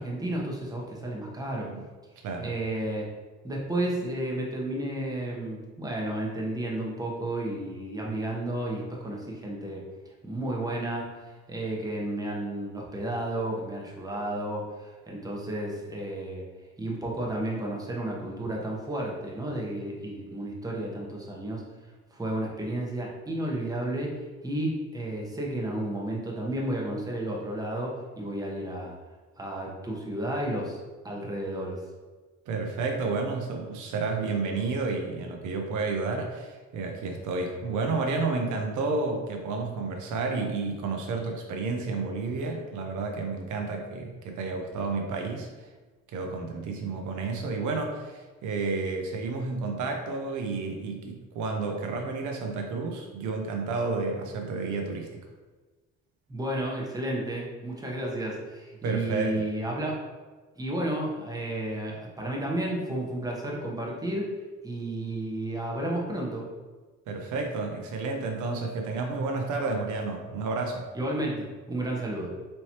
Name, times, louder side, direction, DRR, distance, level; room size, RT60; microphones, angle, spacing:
voice 1, 0.0-1.7 2.4-3.0 3.4-9.8 10.2-16.4 16.8-21.6 22.1-29.0 29.4-30.8 31.0-31.8 56.3-60.0 60.6-64.3 64.6-66.5 70.9-72.3, right 1 dB, 10° right, -2 dB, 1.0 m, -32 dB
voice 2, 32.5-45.7 46.1-55.2 58.8-59.4 67.1-70.9, right 3 dB, 75° right, 2 dB, 0.6 m, -31 dB
4.3 x 3.1 x 2.9 m, 1.3 s
cardioid pair, 90°, 30 cm